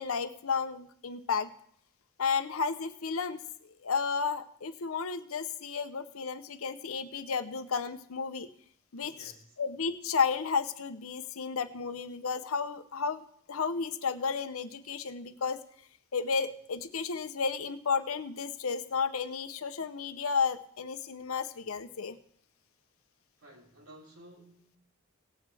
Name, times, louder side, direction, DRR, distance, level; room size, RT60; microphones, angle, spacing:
voice 1, 0.0-1.5 2.2-3.4 3.8-8.5 8.9-9.3 9.6-15.6 16.1-22.2, left 5 dB, 75° left, 0.7 m, -32 dB
voice 2, 8.9-9.6 23.4-24.8, right 1 dB, 80° right, 3.5 m, -54 dB
18.0 x 8.2 x 3.4 m
head